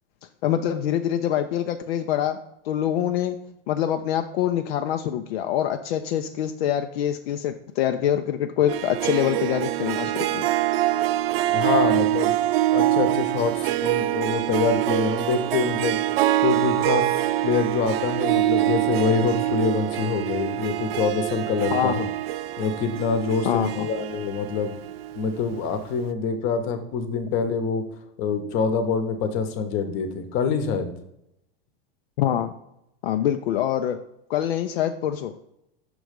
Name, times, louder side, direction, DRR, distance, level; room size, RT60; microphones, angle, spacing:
voice 1, 0.4-2.4 2.6-3.4 3.7-10.4 21.7-22.1 23.4-23.9 32.2-32.5 33.0-34.0 34.3-35.3, left 10 dB, 75° left, 6 dB, 0.5 m, -25 dB
Harp, 8.7-25.5, right 14 dB, 75° right, 0.4 m, -25 dB
voice 2, 11.5-12.3 12.7-16.0 16.4-17.1 17.4-22.0 22.6-24.7 25.2-27.8 28.2-30.9, left 5 dB, 40° left, 8 dB, 0.9 m, -25 dB
6.0 x 3.2 x 5.1 m, 0.81 s
supercardioid pair, 125°, 30 cm